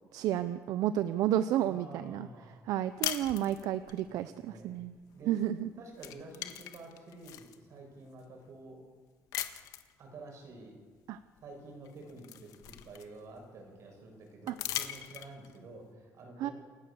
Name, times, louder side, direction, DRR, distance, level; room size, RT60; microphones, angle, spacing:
voice 1, 0.1-2.3 2.7-5.0 5.3-5.7 11.1-11.2 14.5-14.6 16.4-16.5, right 12 dB, 80° right, 12 dB, 0.7 m, -31 dB
voice 2, 1.7-2.6 4.0-4.8 5.1-5.4 5.8-8.8 10.0-10.8 11.4-16.5, right 2 dB, 55° right, 2 dB, 7.0 m, -49 dB
sound 1, 3.0-4.0 5.4-5.6 5.9-7.6 8.2-8.3 9.3-9.9 11.4-11.5 11.8-13.4 14.5-15.6, left 12 dB, 75° left, 1.5 m, -39 dB
28.5 x 15.0 x 7.2 m, 1.5 s
cardioid pair, 140°, 6 cm